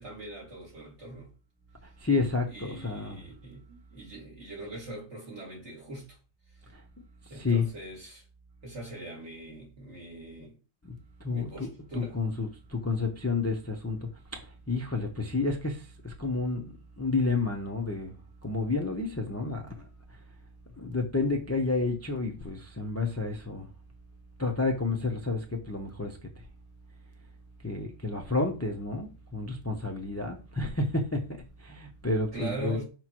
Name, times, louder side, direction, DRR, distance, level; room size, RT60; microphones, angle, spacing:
voice 1, 0.0-1.3 2.5-6.2 7.3-8.2 8.6-10.6 11.3-12.2 32.3-32.8, right 1 dB, 55° right, 2.8 m, -41 dB
voice 2, 1.8-3.3 6.7-6.8 7.2-7.7 10.8-11.0 11.2-14.4 14.7-18.2 18.4-19.9 20.8-23.7 24.4-26.4 27.6-32.8, left 3 dB, 15° left, 0.7 m, -30 dB
6.1 x 5.1 x 3.0 m
omnidirectional pair, 1.4 m